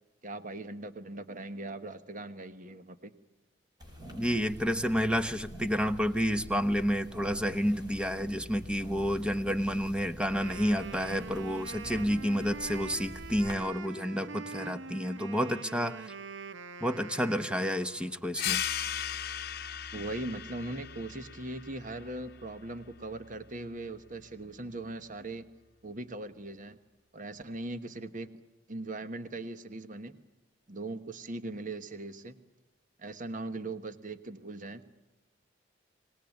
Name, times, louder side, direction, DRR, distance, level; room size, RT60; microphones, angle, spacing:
voice 1, 0.2-3.1 19.9-25.5 25.8-26.8 27.1-28.3 28.7-30.2 30.7-32.4 33.0-34.8, right 2 dB, 45° right, 11 dB, 1.2 m, -40 dB
sound 1, 3.8-13.5, equal, 25° right, 6.2 m, -46 dB
voice 2, 4.2-16.1 16.8-18.6, equal, 5° right, 10 dB, 1.0 m, -30 dB
Wind instrument woodwind instrument, 10.1-18.3, right 4 dB, 80° right, 0.8 m, -44 dB
sound 2, 18.3-23.5, left 10 dB, 55° left, 0.8 m, -37 dB
26.0 x 19.5 x 9.4 m, 1.0 s
head